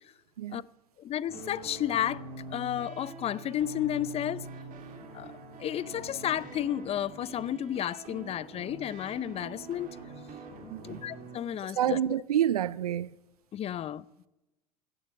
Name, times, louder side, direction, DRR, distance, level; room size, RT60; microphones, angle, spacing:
voice 1, 1.0-4.5 5.1-10.0 10.8-12.0 13.5-14.0, left 11 dB, 30° left, 0.6 m, -32 dB
sound 1, 1.3-11.4, right 3 dB, 45° right, 3.1 m, -44 dB
voice 2, 11.8-13.1, right 10 dB, 80° right, 0.4 m, -28 dB
15.5 x 9.3 x 7.9 m
figure-of-eight pair, 75°, 19 cm